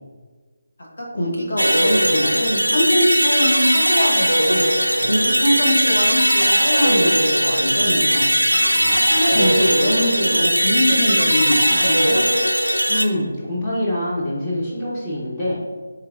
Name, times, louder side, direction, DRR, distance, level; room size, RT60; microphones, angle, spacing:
voice 1, 1.0-4.7 5.0-8.3 9.0-12.2, equal, 60° left, -2 dB, 1.2 m, -22 dB
sound 1, 1.6-13.0, equal, 90° right, 0.4 m, -18 dB
voice 2, 8.5-9.0 9.3-9.8 12.9-15.6, left 1 dB, 20° left, -8 dB, 0.8 m, -26 dB
4.5 x 3.4 x 2.5 m, 1.4 s
figure-of-eight pair, 155°, 0 cm